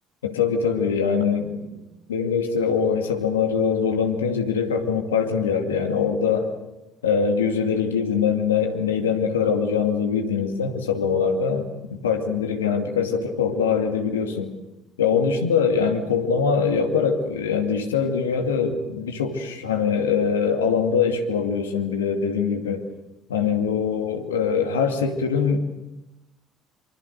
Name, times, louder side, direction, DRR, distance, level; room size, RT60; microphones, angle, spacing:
voice 1, 0.2-1.7 2.1-6.5 7.0-14.5 15.0-22.8 23.3-25.6, left 6 dB, 85° left, 4 dB, 2.4 m, -23 dB
26.0 x 24.5 x 6.7 m, 0.95 s
figure-of-eight pair, 55°, 0 cm